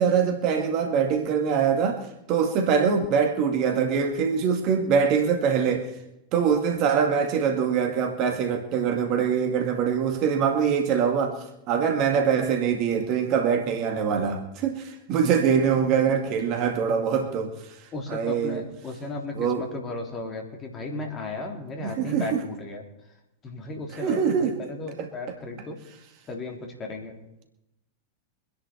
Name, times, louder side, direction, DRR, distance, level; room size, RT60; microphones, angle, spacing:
voice 1, 0.0-2.0 2.3-5.9 6.3-17.7 18.1-18.6 19.4-19.6 21.8-22.4 24.0-24.6 25.0-25.1, right 7 dB, 40° right, 1.9 m, -23 dB
voice 2, 17.9-22.8 23.4-25.8 26.3-27.1, left 2 dB, 25° left, 3.5 m, -35 dB
24.5 x 10.5 x 4.4 m
figure-of-eight pair, 90°, 0 cm